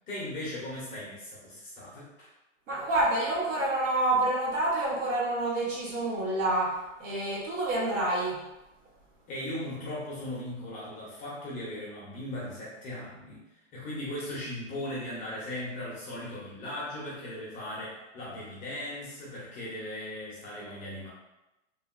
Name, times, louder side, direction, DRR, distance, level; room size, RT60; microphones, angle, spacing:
voice 1, 0.1-2.3 9.3-13.4 13.7-21.1, left 1 dB, 20° left, -6 dB, 0.7 m, -38 dB
voice 2, 2.7-8.4, right 2 dB, 80° right, -5 dB, 1.2 m, -28 dB
3.0 x 2.5 x 2.4 m, 0.97 s
hypercardioid pair, 140°, 38 cm